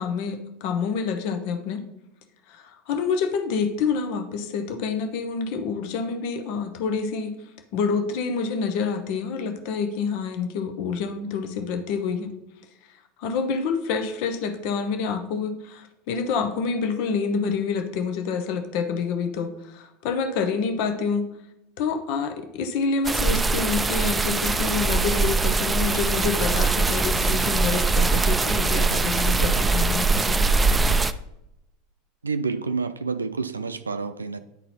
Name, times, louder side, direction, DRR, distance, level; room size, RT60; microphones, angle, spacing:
voice 1, 0.0-1.8 2.5-7.3 7.7-12.3 13.2-21.2 21.8-30.4, left 5 dB, 55° left, 7 dB, 0.9 m, -27 dB
sound 1, 23.0-31.1, right 3 dB, 15° right, 0.4 m, -22 dB
voice 2, 32.2-34.4, right 4 dB, 80° right, 11 dB, 0.5 m, -28 dB
9.9 x 4.2 x 4.1 m, 0.86 s
figure-of-eight pair, 80°, 0 cm